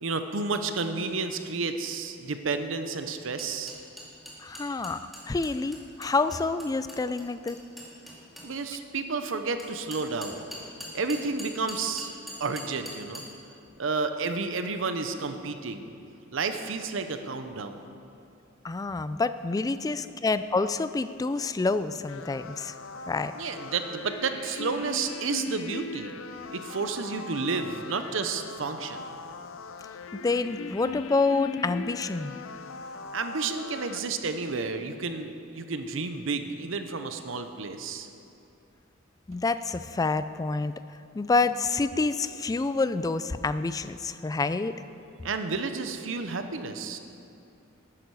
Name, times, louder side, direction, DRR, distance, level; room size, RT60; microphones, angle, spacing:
voice 1, 0.0-3.8 8.4-10.5 10.9-12.1 12.4-13.2 13.8-15.9 16.3-17.9 23.3-26.1 26.5-29.2 33.1-38.1 45.2-47.0, right 4 dB, 70° right, 8 dB, 0.7 m, -31 dB
sound 1, 3.4-8.5 9.6-13.2, equal, ahead, 2.4 m, -42 dB
voice 2, 4.4-7.6 18.6-22.7 23.1-23.3 30.1-32.4 39.3-40.7 41.1-44.8, left 3 dB, 20° left, 12 dB, 0.3 m, -28 dB
sound 2, 22.1-34.0, left 4 dB, 85° left, 0.5 m, -40 dB
13.0 x 9.9 x 4.7 m, 2.6 s
head